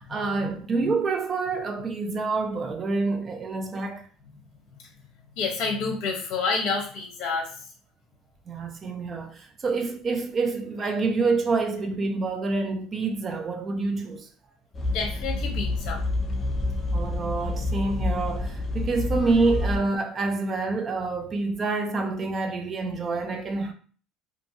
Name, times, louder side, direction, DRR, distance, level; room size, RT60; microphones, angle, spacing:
voice 1, 0.0-4.1 8.5-14.3 16.9-23.7, right 3 dB, 30° right, 0.4 m, -27 dB
voice 2, 5.4-7.5 14.9-16.0, left 4 dB, 60° left, 0.8 m, -28 dB
sound 1, 14.7-19.8, left 2 dB, 25° left, 0.5 m, -28 dB
2.6 x 2.6 x 2.6 m
cardioid pair, 140°, 0 cm